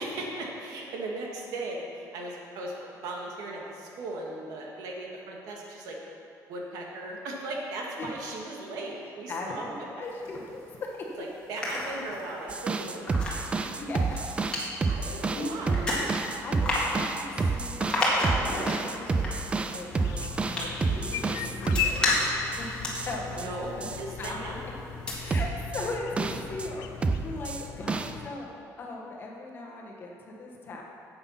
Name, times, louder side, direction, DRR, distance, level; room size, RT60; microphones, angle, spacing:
voice 1, 0.0-6.0 6.5-10.1 11.2-13.1 14.5-15.9 23.3-24.6, right 2 dB, 75° right, -1 dB, 1.9 m, -38 dB
voice 2, 9.3-11.2 13.7-14.1 14.5-14.6 15.0-15.9 16.4-18.0 18.4-22.2 22.5-22.8 23.0-23.9 24.2-24.6 25.2-28.5 28.8-30.8, left 2 dB, 35° left, -2 dB, 1.4 m, -38 dB
sound 1, 10.0-10.9 11.3-24.5 24.9-25.1, left 1 dB, 15° left, 2.0 m, -33 dB
sound 2, 12.5-22.6 22.9-23.5 23.8-24.3 25.3-26.7 27.0-28.1, right 4 dB, 20° right, 0.4 m, -30 dB
sound 3, 19.9-28.3, left 7 dB, 70° left, 0.5 m, -37 dB
9.6 x 8.0 x 5.8 m, 2.9 s
cardioid pair, 170°, 6 cm